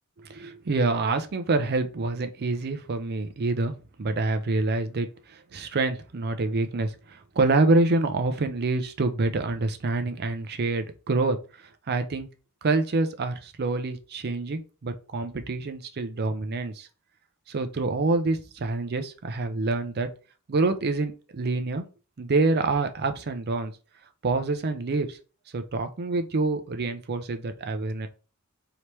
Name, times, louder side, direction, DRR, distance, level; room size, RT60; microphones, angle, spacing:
voice 1, 0.3-3.7 4.0-11.4 11.9-12.3 12.6-16.9 17.5-20.1 20.5-21.8 22.2-23.7 24.2-25.2 25.5-28.1, right 3 dB, 45° right, 0.5 m, -26 dB
3.3 x 2.9 x 3.0 m
head